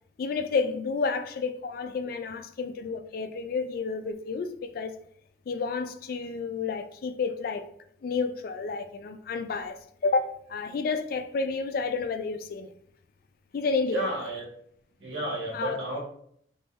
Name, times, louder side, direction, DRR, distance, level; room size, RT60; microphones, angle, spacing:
voice 1, 0.2-4.9 5.5-7.7 8.0-9.8 10.0-12.7 13.5-14.1 15.5-15.8, left 4 dB, 55° left, 0.3 m, -30 dB
voice 2, 13.9-14.5 15.0-16.0, right 1 dB, 85° right, 1.4 m, -31 dB
3.6 x 3.2 x 2.5 m
head